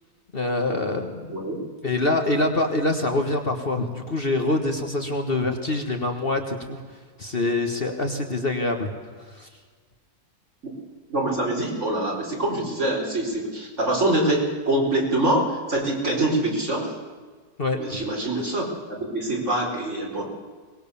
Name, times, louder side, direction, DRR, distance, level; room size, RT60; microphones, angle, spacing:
voice 1, 0.3-1.4 1.8-6.8 7.2-8.9 9.4-9.5 17.6-18.0, left 2 dB, 35° left, 4 dB, 1.7 m, -25 dB
voice 2, 1.3-1.6 10.6-10.7 11.1-16.9 17.8-20.3, right 1 dB, 45° right, -1 dB, 4.8 m, -25 dB
23.5 x 20.0 x 7.1 m, 1.5 s
omnidirectional pair, 1.7 m